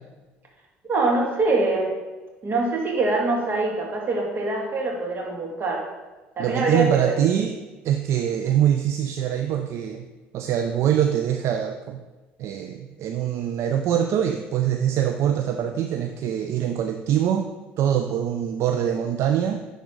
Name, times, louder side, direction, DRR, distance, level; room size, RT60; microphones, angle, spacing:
voice 1, 0.9-1.9 2.4-5.8 6.4-7.2, right 2 dB, 40° right, -1 dB, 2.1 m, -24 dB
voice 2, 6.4-7.6 7.8-10.1 10.3-12.0 12.4-17.5 17.8-19.6, right 9 dB, 60° right, 6 dB, 0.4 m, -23 dB
10.5 x 3.5 x 3.9 m, 1.2 s
hypercardioid pair, 65°, 5 cm